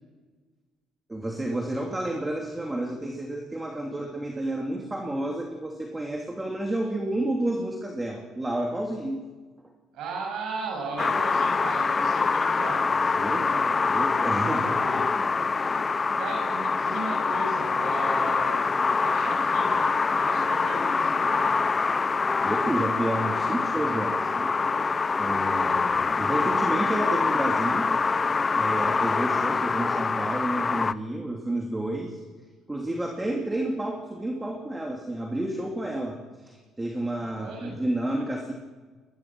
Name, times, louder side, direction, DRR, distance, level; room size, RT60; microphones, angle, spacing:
voice 1, 1.1-9.2 13.1-13.5 13.9-14.8 15.1-15.5 22.4-24.5 25.2-27.9 28.5-32.2 32.7-38.5, right 1 dB, 15° right, 1 dB, 2.8 m, -30 dB
voice 2, 9.9-13.6 14.4-15.0 15.5-15.9 16.1-18.6 18.9-21.5 30.2-30.6 37.2-37.7, right 3 dB, 75° right, 0 dB, 7.1 m, -37 dB
sound 1, 11.0-30.9, left 4 dB, 30° left, 0.6 m, -25 dB
21.5 x 21.5 x 6.2 m, 1.4 s
cardioid pair, 95°, 0 cm